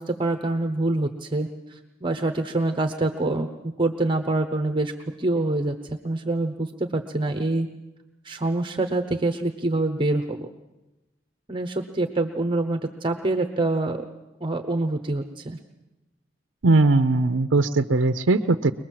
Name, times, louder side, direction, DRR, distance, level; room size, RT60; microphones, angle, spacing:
voice 1, 0.0-4.9 5.2-7.7 8.2-10.5 11.5-14.0 14.4-15.6, right 2 dB, 25° right, 6 dB, 1.0 m, -26 dB
voice 2, 16.6-18.7, right 2 dB, 85° right, 9 dB, 0.7 m, -19 dB
23.5 x 20.0 x 7.6 m, 1.0 s
head